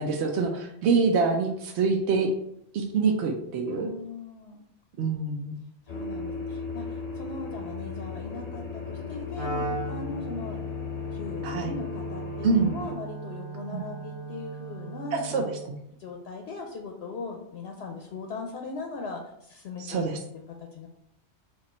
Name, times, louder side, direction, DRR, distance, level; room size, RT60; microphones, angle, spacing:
voice 1, 0.0-2.3 2.7-3.9 5.0-5.6 11.4-11.8 12.4-12.7 13.7-13.9 15.1-15.4 19.8-20.2, right 4 dB, 70° right, 2 dB, 0.8 m, -25 dB
voice 2, 3.7-4.6 5.9-10.6 11.1-15.5 15.9-20.0 20.3-20.9, left 4 dB, 70° left, 2 dB, 0.8 m, -39 dB
sound 1, 5.9-12.9, left 5 dB, 40° left, 0.8 m, -36 dB
Wind instrument woodwind instrument, 9.3-15.7, right 3 dB, 50° right, 1.1 m, -37 dB
4.5 x 2.4 x 4.2 m, 0.74 s
omnidirectional pair, 1.2 m